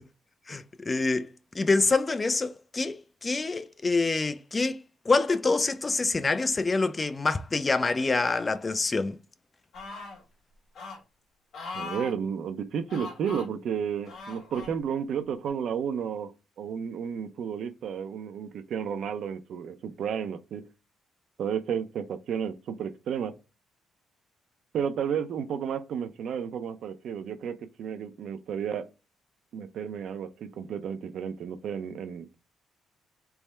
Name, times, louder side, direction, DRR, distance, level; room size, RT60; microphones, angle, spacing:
voice 1, 0.5-9.2, left 3 dB, 25° left, 0.3 m, -26 dB
sound 1, 9.7-10.2 10.8-11.0 11.5-12.1 12.9-13.5 14.1-14.7 15.5-15.6, left 3 dB, 70° left, 1.4 m, -39 dB
voice 2, 11.7-16.3 16.6-20.6 21.4-23.3 24.7-28.9 29.5-32.3, right 7 dB, 70° right, 0.5 m, -32 dB
3.4 x 2.1 x 4.3 m
cardioid pair, 90°, 0 cm